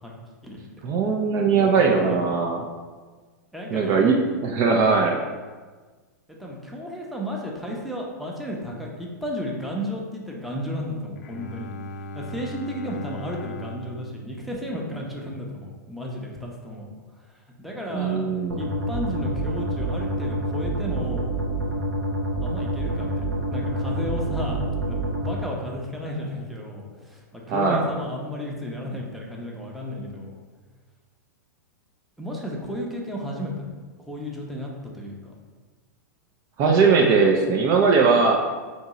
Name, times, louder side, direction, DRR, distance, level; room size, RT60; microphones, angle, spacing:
voice 1, 0.8-2.6 3.7-4.2 4.4-5.2 17.9-18.7 27.5-27.8 36.6-38.3, right 5 dB, 35° right, 1 dB, 0.5 m, -20 dB
voice 2, 3.5-4.1 6.4-11.7 12.1-16.9 17.6-21.3 22.4-24.6 24.9-30.4 32.2-34.7 34.9-35.3, equal, ahead, -2 dB, 0.7 m, -33 dB
Bowed string instrument, 11.2-15.7, equal, 60° left, 0.5 m, -39 dB
sound 1, 18.5-25.3, right 1 dB, 90° right, 0.9 m, -27 dB
3.6 x 2.9 x 4.1 m, 1.4 s
hypercardioid pair, 110°, 10 cm